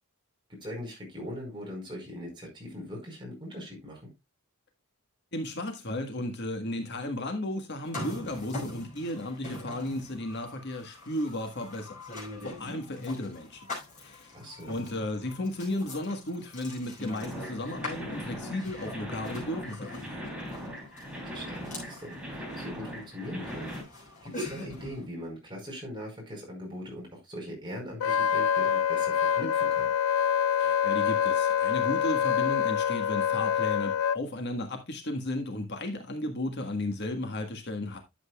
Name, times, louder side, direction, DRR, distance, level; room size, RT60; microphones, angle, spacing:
voice 1, 0.6-4.1 12.6-12.8 14.3-14.7 21.1-23.7 24.2-29.9, equal, 20° right, 5.0 m, -40 dB
voice 2, 5.3-12.0 12.4-13.6 14.0-14.3 14.7-20.3 30.6-38.0, left 1 dB, 50° left, 1.5 m, -34 dB
sound 1, 7.8-25.1, left 2 dB, 35° left, 5.6 m, -43 dB
sound 2, 17.2-23.8, equal, 5° right, 3.2 m, -40 dB
Wind instrument woodwind instrument, 28.0-34.2, left 8 dB, 80° left, 0.4 m, -26 dB
11.5 x 7.9 x 2.4 m
head